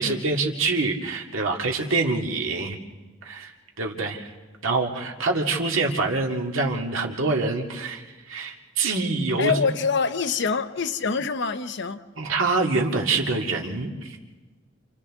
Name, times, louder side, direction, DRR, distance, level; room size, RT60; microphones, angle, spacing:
voice 1, 0.0-2.8 3.3-3.5 3.8-4.3 4.6-8.0 8.3-9.5 12.2-14.1, right 3 dB, 85° right, 2.1 m, -25 dB
voice 2, 9.4-12.0, left 5 dB, 65° left, 0.8 m, -25 dB
29.5 x 28.0 x 3.6 m
head